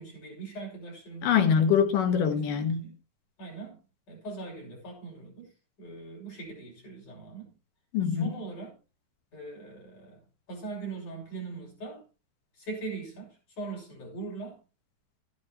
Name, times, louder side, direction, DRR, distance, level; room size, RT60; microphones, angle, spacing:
voice 1, 0.0-1.5 2.5-2.9 3.4-3.8 4.1-5.5 5.8-7.5 8.2-8.7 9.3-12.0 12.5-14.6, right 3 dB, 65° left, 7.9 m, -41 dB
voice 2, 1.2-2.9 7.9-8.4, left 7 dB, 85° left, 3.2 m, -24 dB
13.5 x 12.0 x 3.0 m
omnidirectional pair, 3.7 m